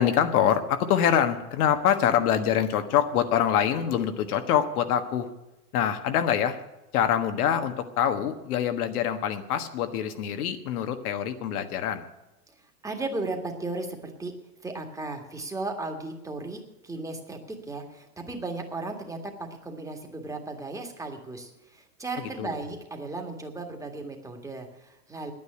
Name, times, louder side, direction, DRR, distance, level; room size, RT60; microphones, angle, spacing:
voice 1, 0.0-5.3 5.7-6.6 6.9-12.1 22.2-22.5, left 9 dB, 75° left, 8 dB, 1.5 m, -25 dB
voice 2, 12.5-14.3 14.6-25.3, right 2 dB, 5° right, 3 dB, 1.8 m, -36 dB
10.0 x 9.4 x 9.7 m, 0.99 s
supercardioid pair, 130°, 45 cm